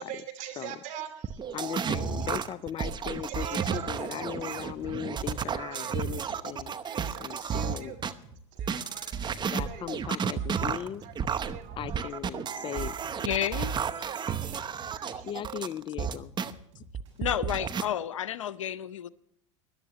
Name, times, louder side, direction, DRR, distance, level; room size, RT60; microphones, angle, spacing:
voice 1, 0.0-1.4 1.9-2.4 2.8-5.0 5.4-5.9 6.9-8.0 8.6-9.9 10.3-11.1 11.4-12.4 12.8-13.3 14.1-14.6 14.9-15.6, right 11 dB, 55° right, 6 dB, 2.7 m, -45 dB
sound 1, 1.2-8.1 8.6-16.5 16.9-17.8, right 7 dB, 30° right, 0.9 m, -32 dB
voice 2, 1.5-6.9 7.2-7.9 9.5-11.0 11.8-12.9 15.2-16.3, left 10 dB, 35° left, 19 dB, 0.4 m, -37 dB
sound 2, 4.1-17.8, right 2 dB, 75° right, 7.0 m, -52 dB
voice 3, 13.2-13.7 14.0-14.1 17.2-19.1, left 10 dB, 85° left, 18 dB, 0.6 m, -31 dB
20.5 x 12.0 x 3.0 m, 0.74 s
hypercardioid pair, 85°, 16 cm